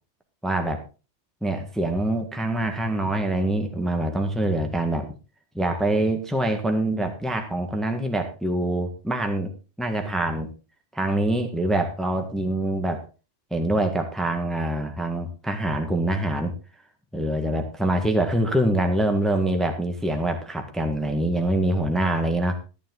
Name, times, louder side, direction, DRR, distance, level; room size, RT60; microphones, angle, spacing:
voice 1, 0.4-0.8 1.4-5.1 5.5-9.5 9.8-10.5 10.9-13.0 13.5-16.5 17.1-22.5, right 1 dB, ahead, 5 dB, 1.6 m, -25 dB
14.0 x 10.5 x 3.9 m, 0.32 s
omnidirectional pair, 1.2 m